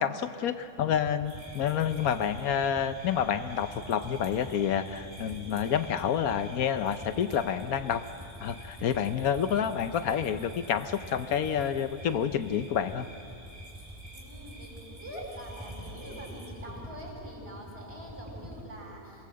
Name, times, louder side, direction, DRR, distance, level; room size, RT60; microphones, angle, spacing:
voice 1, 0.0-8.0 8.4-13.1, left 8 dB, 75° left, 10 dB, 1.2 m, -29 dB
Motorcycle / Idling, 0.8-18.6, equal, 5° right, 2.1 m, -47 dB
sound 1, 1.3-16.5, right 2 dB, 70° right, 4.1 m, -49 dB
voice 2, 14.1-19.3, equal, 40° right, -3 dB, 6.5 m, -44 dB
27.0 x 18.5 x 7.6 m, 2.6 s
omnidirectional pair, 1.5 m